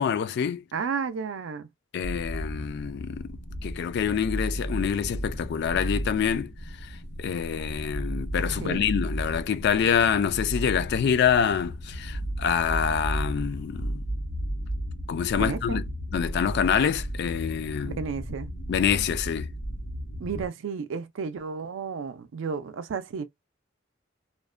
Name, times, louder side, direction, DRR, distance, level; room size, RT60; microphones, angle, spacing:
voice 1, 0.0-0.6 1.9-3.3 3.6-6.5 6.8-14.0 15.1-15.8 16.1-18.0 18.7-19.5, left 7 dB, 60° left, 0.3 m, -26 dB
voice 2, 0.7-1.7 8.6-8.9 15.4-15.8 17.8-18.5 20.2-23.2, right 5 dB, 75° right, 0.4 m, -32 dB
sound 1, 2.0-20.5, equal, 75° left, 1.0 m, -34 dB
2.4 x 2.1 x 2.4 m
head